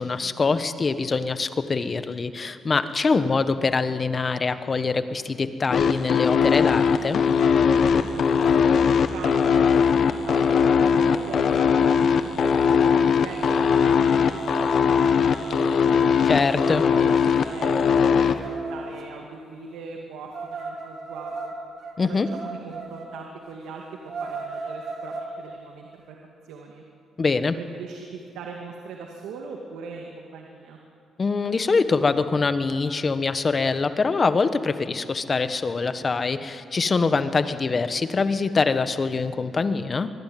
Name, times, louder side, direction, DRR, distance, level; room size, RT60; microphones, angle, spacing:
voice 1, 0.0-7.2 16.3-16.8 22.0-22.3 27.2-27.6 31.2-40.1, left 4 dB, 35° left, 11 dB, 1.3 m, -24 dB
sound 1, 5.7-18.3, left 6 dB, 60° left, 1.4 m, -19 dB
voice 2, 7.7-21.5 22.0-26.2 26.4-26.8 27.6-30.8, right 4 dB, 90° right, 1 dB, 2.4 m, -41 dB
sound 2, 11.1-11.2 11.5-11.8 12.1-19.0 20.3-23.1 23.5-23.6 24.0-25.3, right 3 dB, 55° right, 3.4 m, -38 dB
24.5 x 21.0 x 9.4 m, 2.5 s
cardioid pair, 90°, 0 cm